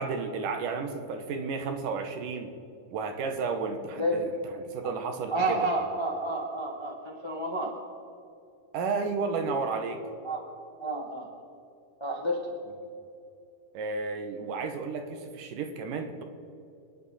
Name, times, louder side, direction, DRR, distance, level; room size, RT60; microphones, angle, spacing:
voice 1, 0.0-2.5 2.9-4.3 4.5-5.7 8.7-10.0 13.7-16.2, right 4 dB, 70° right, 6 dB, 2.6 m, -32 dB
voice 2, 3.9-4.3 5.3-7.7 9.7-9.8 10.2-10.5 10.8-11.3 12.0-12.5, right 1 dB, 25° left, 0 dB, 0.5 m, -30 dB
28.0 x 10.0 x 4.2 m, 2.7 s
omnidirectional pair, 4.2 m